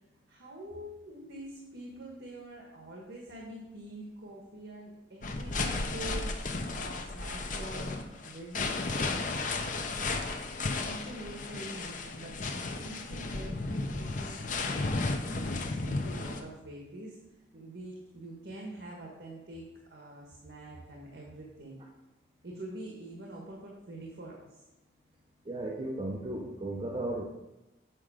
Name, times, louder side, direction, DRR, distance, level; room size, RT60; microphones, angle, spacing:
voice 1, 0.3-9.4 10.2-17.2 17.5-19.6 19.9-21.8 22.4-24.6, right 1 dB, 75° right, -2 dB, 1.4 m, -45 dB
sound 1, 5.2-16.4, left 3 dB, 45° left, 0.7 m, -34 dB
voice 2, 25.4-27.2, right 1 dB, 30° right, -1 dB, 0.7 m, -35 dB
7.6 x 4.8 x 5.0 m, 0.98 s
head